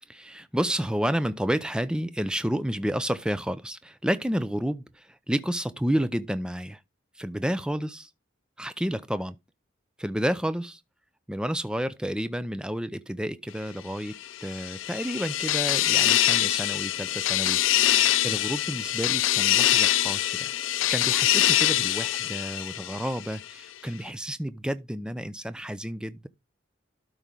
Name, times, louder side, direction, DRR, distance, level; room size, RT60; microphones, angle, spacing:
voice 1, 0.1-6.8 7.2-8.1 8.6-9.4 10.0-10.8 11.3-17.6 18.2-26.3, equal, 5° right, 0.5 m, -30 dB
sound 1, 14.2-23.4, left 13 dB, 85° left, 0.5 m, -24 dB
12.5 x 4.7 x 3.8 m
head